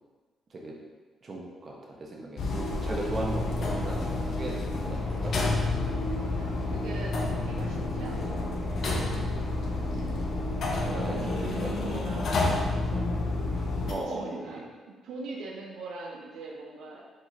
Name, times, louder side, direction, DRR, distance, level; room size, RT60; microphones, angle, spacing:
voice 1, 1.2-5.5 10.8-12.2 13.9-14.6, right 2 dB, 40° right, -2 dB, 0.9 m, -37 dB
sound 1, 2.4-13.9, left 2 dB, 60° left, 0.7 m, -29 dB
voice 2, 6.1-8.5 10.6-12.5 13.8-14.6 14.9-17.0, right 3 dB, 85° right, -2 dB, 0.6 m, -42 dB
4.9 x 3.8 x 2.8 m, 1.4 s
cardioid pair, 90°, 0 cm